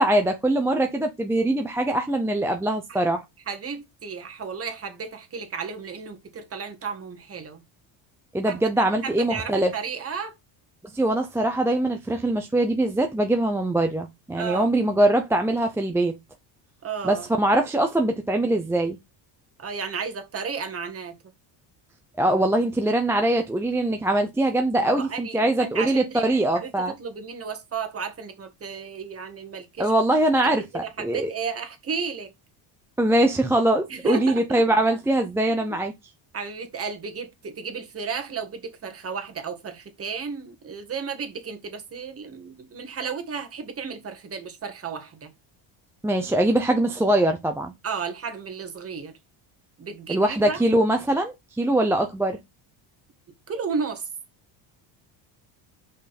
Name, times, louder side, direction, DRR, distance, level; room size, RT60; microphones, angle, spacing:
voice 1, 0.0-3.2 8.3-9.7 10.9-16.1 17.0-19.0 22.2-26.9 29.8-31.3 33.0-35.9 46.0-47.7 50.1-52.4, right 1 dB, 5° right, 0.6 m, -22 dB
voice 2, 3.5-7.6 8.5-8.6 9.0-10.3 14.4-14.7 16.8-17.2 19.6-21.2 24.8-29.9 30.4-32.3 33.9-34.4 35.5-35.8 36.3-45.3 47.8-49.2 49.8-50.6 53.5-54.1, right 5 dB, 30° right, 1.7 m, -33 dB
6.1 x 5.3 x 4.2 m
cardioid pair, 140°, 45 cm